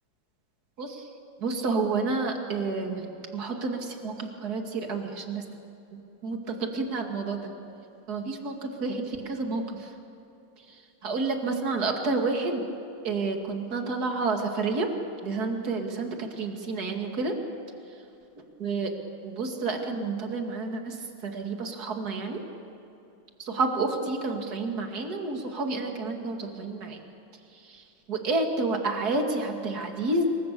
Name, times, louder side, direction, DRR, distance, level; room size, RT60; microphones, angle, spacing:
voice 1, 0.8-1.1 1.4-3.1 3.3-5.4 5.9-7.5 8.1-9.9 11.0-12.6 13.0-14.9 15.2-17.4 18.6-18.9 19.2-21.0 21.2-22.4 23.4-27.0 27.6-27.8 28.1-30.3, right 3 dB, 55° right, 3 dB, 2.8 m, -29 dB
26.5 x 24.0 x 6.9 m, 2.9 s
omnidirectional pair, 2.1 m